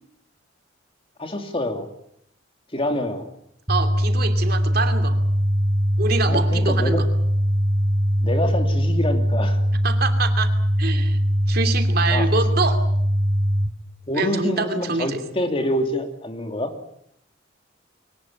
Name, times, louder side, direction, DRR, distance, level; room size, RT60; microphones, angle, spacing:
voice 1, 1.2-1.9 2.7-3.3 6.3-7.0 8.2-9.6 12.1-12.3 14.1-16.7, left 1 dB, 30° left, 5 dB, 2.8 m, -26 dB
sound 1, 3.7-13.7, equal, 15° right, 1.2 m, -21 dB
voice 2, 3.7-5.2 6.0-7.1 9.8-10.5 10.8-11.2 11.5-12.9 14.1-15.2, right 4 dB, 50° right, 7 dB, 2.8 m, -25 dB
23.5 x 19.0 x 9.0 m, 0.74 s
head